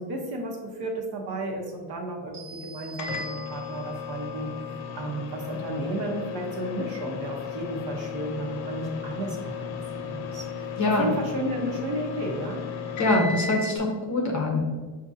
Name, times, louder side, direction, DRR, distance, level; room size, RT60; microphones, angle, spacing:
voice 1, 0.0-4.5 4.9-12.6, right 1 dB, 50° right, 1 dB, 1.0 m, -33 dB
sound 1, 2.3-4.1, right 2 dB, 85° right, 1.2 m, -44 dB
Microwave oven, 3.0-13.7, left 6 dB, 75° left, 0.7 m, -35 dB
voice 2, 10.8-11.1 13.0-14.6, left 2 dB, 35° left, 0 dB, 0.7 m, -24 dB
5.9 x 2.6 x 2.6 m, 1.4 s
cardioid pair, 130°, 48 cm